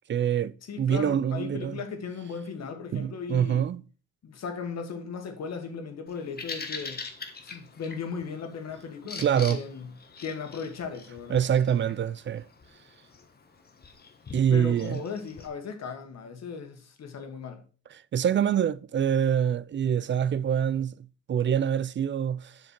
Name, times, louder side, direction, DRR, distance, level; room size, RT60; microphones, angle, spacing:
voice 1, 0.1-1.8 2.9-3.8 9.2-9.6 11.3-12.4 14.3-15.0 18.1-22.6, right 8 dB, 40° right, 0.4 m, -25 dB
voice 2, 0.7-3.7 4.2-7.0 7.4-9.9 10.2-11.4 14.5-17.6, left 5 dB, 60° left, 1.8 m, -37 dB
Bird vocalization bird call bird song, 6.1-15.5, left 4 dB, 30° left, 1.3 m, -43 dB
7.4 x 5.8 x 4.4 m
cardioid pair, 90°, 30 cm